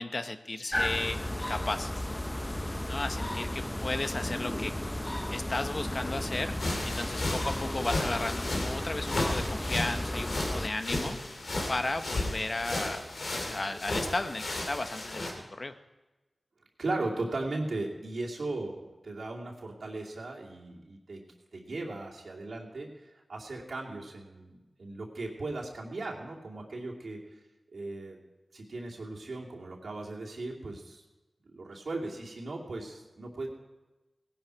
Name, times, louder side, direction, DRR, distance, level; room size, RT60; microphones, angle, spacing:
voice 1, 0.0-1.9 2.9-4.7 5.3-6.6 6.8-11.2 11.7-13.0 13.3-15.3 15.6-15.7, left 2 dB, 45° left, 9 dB, 0.9 m, -34 dB
sound 1, 0.7-10.7, left 1 dB, 15° left, 0.6 m, -34 dB
voice 2, 2.7-3.0 16.8-21.3 21.5-27.2 27.7-28.2 28.5-31.0 31.5-33.5, right 2 dB, 80° right, -2 dB, 2.6 m, -37 dB
sound 2, 6.6-15.3, left 2 dB, 75° left, 2.7 m, -34 dB
18.0 x 11.5 x 4.6 m, 1.1 s
wide cardioid pair, 75°, 0 cm